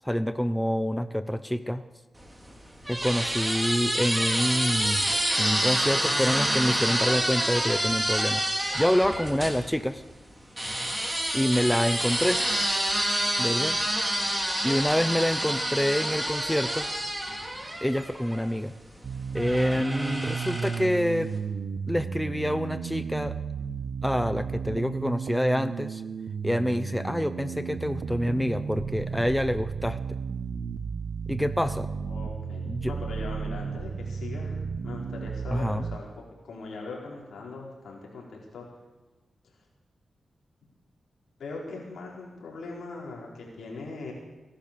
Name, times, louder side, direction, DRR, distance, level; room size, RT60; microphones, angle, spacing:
voice 1, 0.0-1.8 2.9-8.4 8.8-10.0 11.3-12.4 13.4-13.8 14.6-16.9 17.8-18.7 19.3-21.3 21.9-23.4 24.0-26.0 26.4-30.2 31.3-31.9 32.7-32.9 35.5-35.9, equal, 5° left, 12 dB, 0.7 m, -27 dB
sound 1, 2.2-9.6 10.6-18.5 19.4-21.0, right 1 dB, 15° right, 3.4 m, -28 dB
sound 2, 19.0-36.0, right 5 dB, 80° right, 0.9 m, -34 dB
voice 2, 32.0-36.1 36.4-38.7 41.4-44.1, left 3 dB, 85° left, -2 dB, 4.3 m, -40 dB
18.0 x 11.5 x 6.8 m, 1.2 s
cardioid pair, 55°, 0 cm